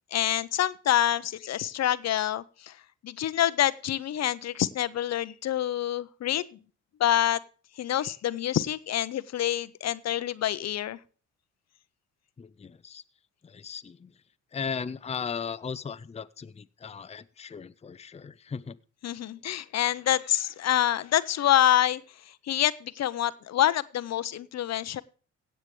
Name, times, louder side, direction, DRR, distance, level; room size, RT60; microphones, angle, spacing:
voice 1, 0.1-2.8 3.0-6.6 7.0-7.4 7.8-11.0 19.0-22.0 22.4-25.0, left 12 dB, 60° left, 16 dB, 0.7 m, -26 dB
voice 2, 12.4-13.0 13.4-14.2 14.5-18.8, left 6 dB, 20° left, 13 dB, 0.6 m, -37 dB
16.5 x 8.2 x 3.2 m, 0.38 s
cardioid pair, 90°, 30 cm